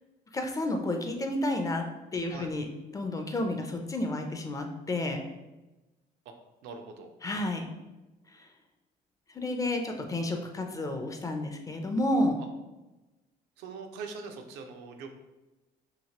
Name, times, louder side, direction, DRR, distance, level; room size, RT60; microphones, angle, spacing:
voice 1, 0.3-1.8 2.1-2.7 2.9-5.2 7.2-7.7 8.3-8.5 9.3-12.4, left 1 dB, 20° left, 4 dB, 0.4 m, -30 dB
voice 2, 2.2-2.5 6.3-6.4 6.6-7.1 13.6-15.1, right 4 dB, 85° right, 5 dB, 0.5 m, -42 dB
2.9 x 2.8 x 2.8 m, 1.0 s
cardioid pair, 110°, 17 cm